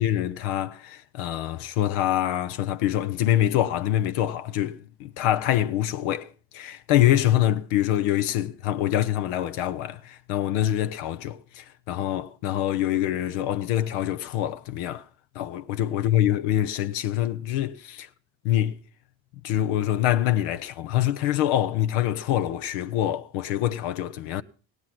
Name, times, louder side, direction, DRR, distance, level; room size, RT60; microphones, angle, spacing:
voice 1, 0.0-15.0 15.3-18.1 18.4-18.8 19.4-24.4, left 12 dB, 75° left, 0.8 m, -25 dB
17.5 x 9.8 x 5.9 m
hypercardioid pair, 50°, 50 cm